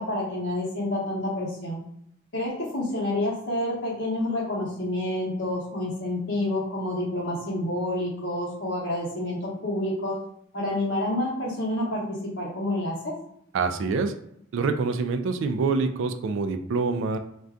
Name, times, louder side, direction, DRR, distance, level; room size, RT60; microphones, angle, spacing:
voice 1, 0.0-1.8 2.3-10.2 10.5-13.1, left 1 dB, 60° left, -5 dB, 0.9 m, -28 dB
voice 2, 13.5-14.1 14.5-17.2, right 4 dB, 65° right, 7 dB, 0.3 m, -26 dB
2.6 x 2.3 x 3.4 m, 0.73 s
head